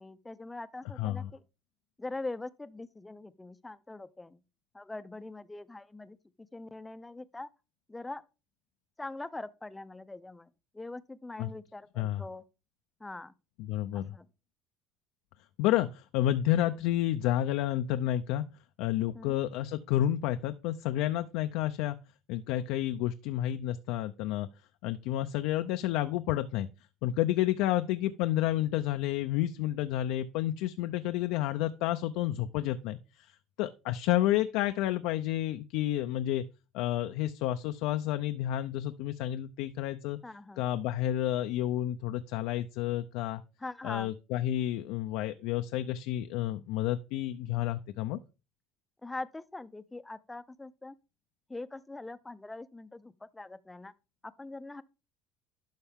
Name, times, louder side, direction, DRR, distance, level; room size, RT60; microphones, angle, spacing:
voice 1, 0.0-1.4 2.0-4.4 4.7-6.2 6.5-7.5 7.9-8.2 9.0-10.5 10.7-12.4 13.0-13.3 13.9-14.2 19.1-19.4 40.2-40.6 43.6-44.1 49.0-51.0 51.5-53.9 54.2-54.8, left 2 dB, 10° left, 0.5 m, -42 dB
voice 2, 1.0-1.3 11.4-11.5 12.0-12.2 13.6-14.1 15.6-18.4 18.8-22.0 22.3-24.5 24.8-26.7 27.0-33.3 33.6-36.4 36.7-40.2 40.6-43.4 43.8-48.2, left 13 dB, 75° left, 0.5 m, -30 dB
11.5 x 5.6 x 3.6 m
cardioid pair, 135°, 0 cm